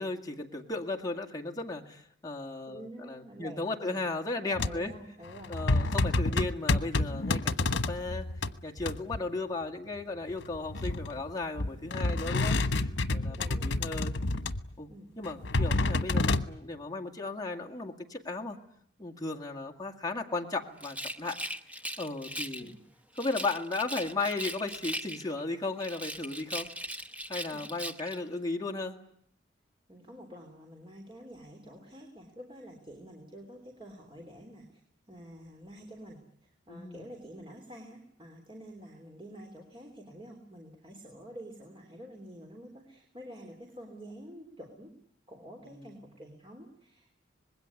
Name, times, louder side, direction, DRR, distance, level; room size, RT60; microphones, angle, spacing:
voice 1, 0.0-4.9 5.5-8.3 8.6-14.2 14.8-14.9 15.2-18.6 19.0-21.4 22.0-22.7 23.2-26.7 27.3-29.0 36.7-37.1 45.6-46.1, left 3 dB, 20° left, 1 dB, 2.0 m, -35 dB
voice 2, 2.7-4.1 4.6-6.0 13.3-13.7 14.9-15.1 22.6-22.7 27.5-27.6 28.0-28.1 29.9-34.8 35.1-44.9 45.3-47.2, equal, 25° right, 1 dB, 3.3 m, -48 dB
sound 1, 4.5-4.9 5.3-8.5 8.8-9.2 10.3-11.3 11.6-14.7 15.2-16.4, left 2 dB, 90° left, 1.2 m, -29 dB
Rattle, 20.8-22.7 23.2-25.4 25.8-28.2, equal, 10° right, 1.0 m, -39 dB
25.5 x 20.5 x 9.6 m, 0.69 s
head